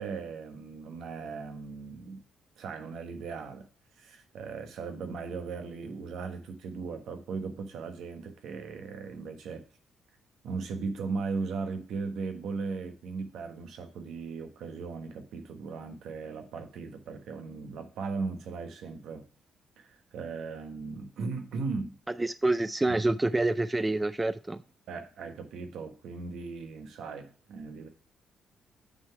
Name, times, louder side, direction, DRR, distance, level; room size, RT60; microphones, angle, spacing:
voice 1, 0.0-2.2 2.6-3.7 4.0-9.6 10.4-19.2 19.8-21.9 22.9-23.0 24.9-27.9, right 4 dB, 75° right, 6 dB, 1.2 m, -37 dB
voice 2, 22.2-24.6, right 2 dB, 15° right, 13 dB, 0.3 m, -27 dB
8.8 x 3.8 x 4.6 m, 0.41 s
cardioid pair, 90°, 0 cm